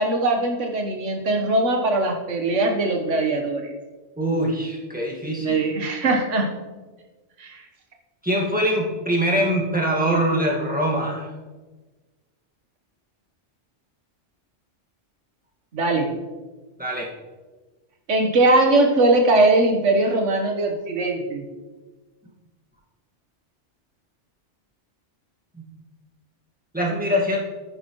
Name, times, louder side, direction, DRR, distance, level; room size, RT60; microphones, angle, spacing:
voice 1, 0.0-3.7 5.4-6.5 7.4-7.6 15.7-16.1 18.1-21.5, right 2 dB, 90° right, 3 dB, 1.5 m, -20 dB
voice 2, 4.2-5.7 8.2-11.3 16.8-17.1 25.5-25.6 26.7-27.4, equal, 5° right, -3 dB, 1.6 m, -23 dB
10.0 x 9.6 x 3.0 m, 1.3 s
omnidirectional pair, 1.2 m